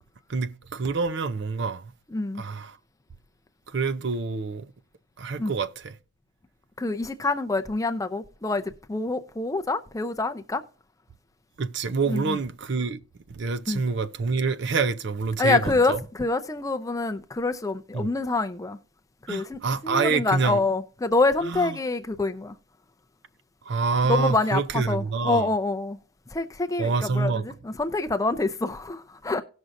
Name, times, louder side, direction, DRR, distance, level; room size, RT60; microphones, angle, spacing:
voice 1, 0.3-1.9 2.4-2.8 3.7-4.7 5.2-5.9 11.6-13.0 13.3-16.0 17.9-18.1 19.3-20.6 21.5-21.8 23.6-25.5 26.8-27.4, right 4 dB, 50° right, 0.5 m, -27 dB
voice 2, 2.1-2.4 5.4-5.5 6.8-10.6 12.1-12.4 13.7-13.8 15.4-18.8 19.2-22.6 24.1-26.0 26.3-29.4, left 3 dB, 15° left, 0.4 m, -26 dB
18.0 x 6.2 x 2.6 m
head